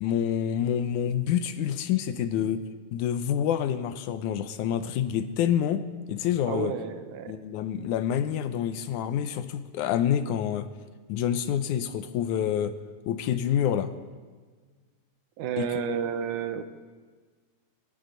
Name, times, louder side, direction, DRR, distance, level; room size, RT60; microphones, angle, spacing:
voice 1, 0.0-2.7 2.9-6.7 7.3-10.7 11.1-12.8 13.1-13.9 15.6-15.9, left 9 dB, 80° left, 10 dB, 2.2 m, -27 dB
voice 2, 6.5-7.3 15.4-16.6, right 8 dB, 90° right, 9 dB, 2.4 m, -31 dB
19.0 x 17.5 x 4.0 m, 1.5 s
omnidirectional pair, 3.5 m